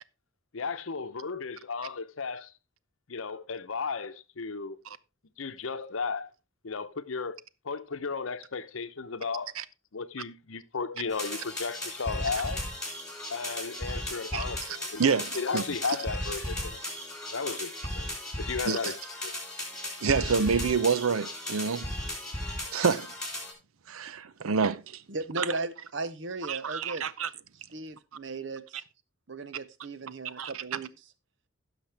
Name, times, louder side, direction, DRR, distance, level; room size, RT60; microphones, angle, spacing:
voice 1, 0.5-2.5 3.1-4.8 5.4-6.3 6.6-7.4 7.6-9.5 9.9-12.6 13.3-15.0 15.3-16.8 17.3-18.1 18.4-19.3, left 4 dB, 75° left, 0.8 m, -34 dB
sound 1, 11.1-23.5, left 1 dB, 5° left, 3.3 m, -36 dB
voice 2, 14.3-15.6 18.7-18.9 20.0-21.9 22.7-23.1 23.9-25.0 25.4-25.5 26.5-27.3 30.4-30.8, right 5 dB, 90° right, 0.6 m, -28 dB
voice 3, 25.1-27.1 27.7-28.8 29.3-30.9, right 3 dB, 60° right, 0.8 m, -36 dB
16.0 x 6.0 x 3.4 m
head